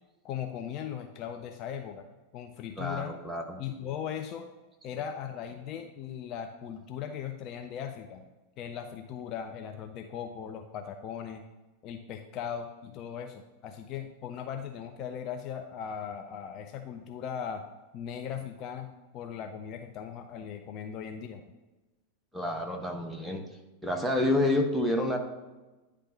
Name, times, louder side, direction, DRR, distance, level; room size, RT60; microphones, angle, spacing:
voice 1, 0.2-2.1 2.3-3.2 3.6-4.5 4.8-8.2 8.6-11.4 11.8-17.7 17.9-21.4, left 8 dB, 35° left, 5 dB, 0.5 m, -38 dB
voice 2, 2.8-3.6 22.3-23.5 23.8-25.2, left 1 dB, 5° right, 2 dB, 0.9 m, -28 dB
9.6 x 3.3 x 5.0 m, 1.1 s
figure-of-eight pair, 90°, 0 cm